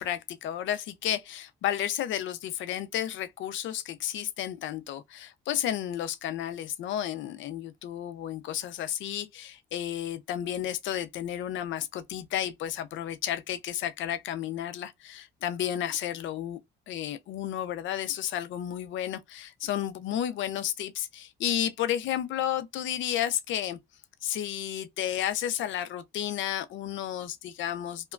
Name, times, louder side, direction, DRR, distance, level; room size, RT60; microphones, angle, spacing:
voice 1, 0.0-16.6 16.9-23.8 24.2-28.1, left 11 dB, 75° left, 0.4 m, -32 dB
2.9 x 2.2 x 2.4 m
cardioid pair, 90°, 20 cm